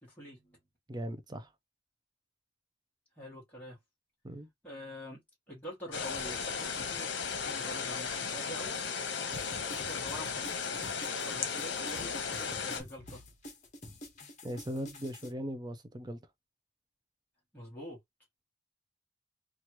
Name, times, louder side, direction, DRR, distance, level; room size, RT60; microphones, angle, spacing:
voice 1, 0.0-0.6 3.2-3.8 4.6-5.2 5.5-7.1 7.4-8.8 9.8-13.2 17.5-18.0, equal, 10° left, 1.3 m, -46 dB
voice 2, 0.9-1.5 4.2-4.5 14.4-16.2, equal, 25° right, 0.5 m, -39 dB
sound 1, 5.9-12.8, left 6 dB, 75° left, 0.9 m, -35 dB
sound 2, 9.3-15.3, left 1 dB, 40° left, 1.1 m, -48 dB
3.0 x 2.5 x 2.9 m
head